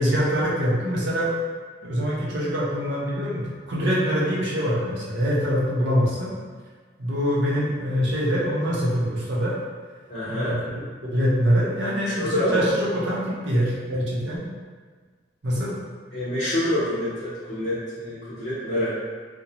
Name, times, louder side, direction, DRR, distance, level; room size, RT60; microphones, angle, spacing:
voice 1, 0.0-1.3 1.8-6.3 7.0-9.6 10.3-14.4 15.4-15.7, equal, 85° right, -5 dB, 0.7 m, -24 dB
voice 2, 10.1-10.6 12.2-12.7 16.1-19.0, left 1 dB, 50° left, -15 dB, 0.8 m, -26 dB
2.5 x 2.1 x 2.9 m, 1.5 s
head